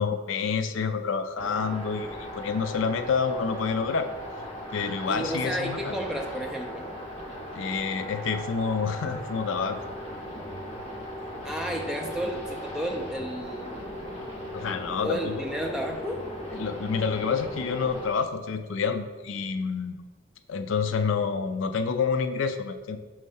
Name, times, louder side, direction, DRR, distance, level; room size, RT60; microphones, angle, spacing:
voice 1, 0.0-4.1 4.7-6.0 7.5-9.8 14.5-15.4 16.5-20.0 20.5-23.0, left 5 dB, 65° left, 9 dB, 0.4 m, -28 dB
sound 1, 1.4-18.1, equal, 30° left, 1.4 m, -38 dB
voice 2, 5.1-6.9 11.4-13.9 15.0-16.2, equal, 5° right, 1 dB, 0.5 m, -32 dB
6.3 x 3.2 x 5.4 m, 1.4 s
head